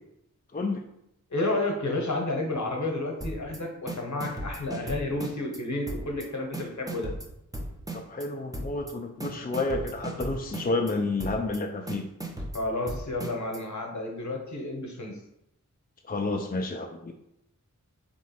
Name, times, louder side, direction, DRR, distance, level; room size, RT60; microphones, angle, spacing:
voice 1, 0.5-0.8 7.9-12.1 16.1-17.1, left 2 dB, 30° left, 3 dB, 0.4 m, -30 dB
voice 2, 1.3-7.1 12.5-15.2, left 2 dB, 60° left, 1 dB, 1.0 m, -31 dB
sound 1, 3.2-3.6 3.9-5.6 5.9-6.3 6.5-8.3 8.5-8.9 9.2-10.9 11.2-11.6 11.9-13.6, right 1 dB, 10° right, 0.7 m, -36 dB
3.6 x 3.0 x 4.3 m, 0.81 s
wide cardioid pair, 45°, 32 cm